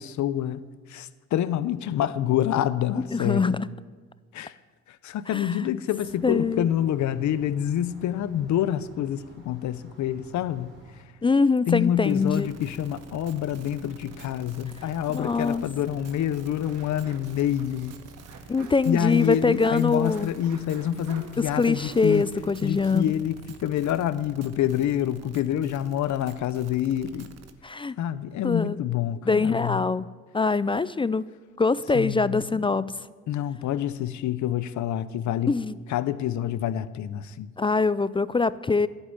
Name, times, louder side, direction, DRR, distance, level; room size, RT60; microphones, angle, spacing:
voice 1, 0.0-3.6 4.3-4.6 5.0-10.7 11.7-18.0 18.9-22.2 22.6-27.3 28.0-29.8 31.9-32.6 33.3-35.5 35.9-37.5, left 11 dB, 70° left, 0.7 m, -27 dB
voice 2, 3.1-3.7 5.3-5.6 6.2-6.7 11.2-12.5 15.1-15.6 18.5-20.3 21.4-23.2 27.6-28.0 28.4-28.8 29.3-30.1 30.3-31.2 31.6-32.9 35.5-35.8 37.6-38.9, left 4 dB, 20° left, 0.3 m, -23 dB
sound 1, 6.0-11.0, right 1 dB, 40° right, 4.2 m, -52 dB
sound 2, 12.0-27.5, right 6 dB, 60° right, 1.2 m, -48 dB
sound 3, 13.9-23.3 23.6-23.7 23.9-24.0, right 5 dB, 85° right, 1.9 m, -50 dB
11.5 x 8.1 x 9.9 m
cardioid pair, 90°, 30 cm